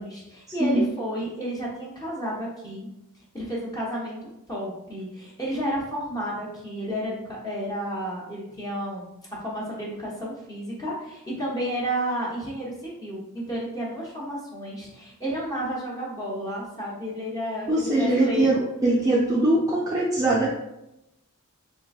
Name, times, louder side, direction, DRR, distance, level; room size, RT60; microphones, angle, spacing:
voice 1, 0.0-2.9 3.3-9.1 9.4-18.6, equal, 15° left, -5 dB, 0.7 m, -31 dB
voice 2, 17.7-18.5 18.8-20.5, right 2 dB, 15° right, -6 dB, 0.4 m, -21 dB
3.6 x 3.3 x 2.3 m, 0.89 s
head